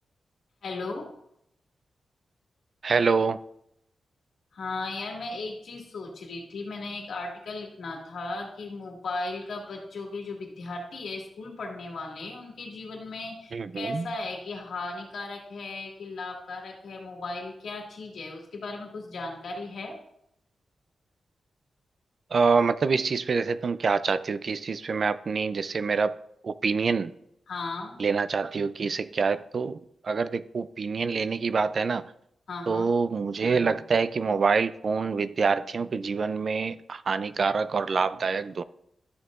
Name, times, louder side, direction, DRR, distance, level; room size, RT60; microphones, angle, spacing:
voice 1, 0.6-1.1 4.5-20.0 27.5-28.0 32.5-32.9, left 3 dB, 70° left, 1.9 m, -36 dB
voice 2, 2.8-3.4 13.5-14.1 22.3-26.2 26.4-27.1 28.0-32.0 32.7-38.6, right 5 dB, 50° right, 0.3 m, -26 dB
12.5 x 6.6 x 2.4 m
wide cardioid pair, 140°, 0 cm